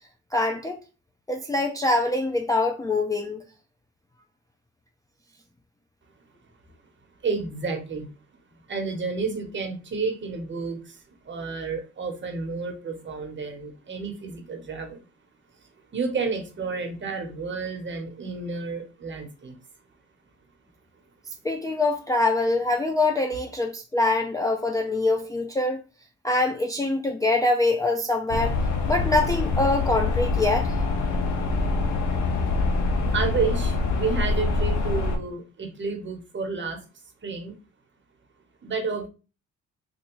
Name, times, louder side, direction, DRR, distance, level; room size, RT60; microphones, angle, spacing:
voice 1, 0.3-0.8 1.3-3.5 21.4-25.8 26.2-28.6 28.9-30.7, left 2 dB, 10° left, 0.4 m, -24 dB
voice 2, 7.2-8.1 8.7-15.0 15.9-19.6 33.1-36.8 37.2-37.5 38.6-39.1, right 4 dB, 40° right, 1.0 m, -30 dB
sound 1, 28.3-35.2, left 3 dB, 75° left, 0.7 m, -25 dB
3.4 x 2.7 x 3.0 m
cardioid pair, 90°, 30 cm